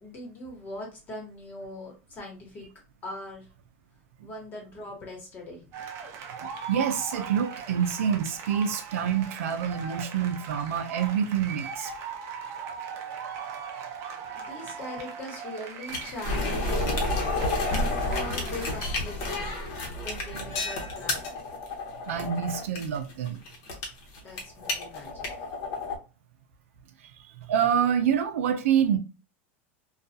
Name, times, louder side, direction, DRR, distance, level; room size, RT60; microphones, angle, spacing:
voice 1, 0.0-2.7 3.0-3.5 4.2-5.6 14.3-17.4 17.9-19.6 20.0-21.3 24.2-25.5, left 1 dB, 25° left, 1.2 m, -41 dB
sound 1, 5.7-18.9, right 6 dB, 40° right, 0.6 m, -40 dB
voice 2, 6.4-11.9 22.1-23.4 27.5-29.0, right 8 dB, 90° right, 0.5 m, -26 dB
sound 2, 15.9-26.0, left 2 dB, 45° left, 0.9 m, -30 dB
2.3 x 2.2 x 2.6 m
supercardioid pair, 145°, 7 cm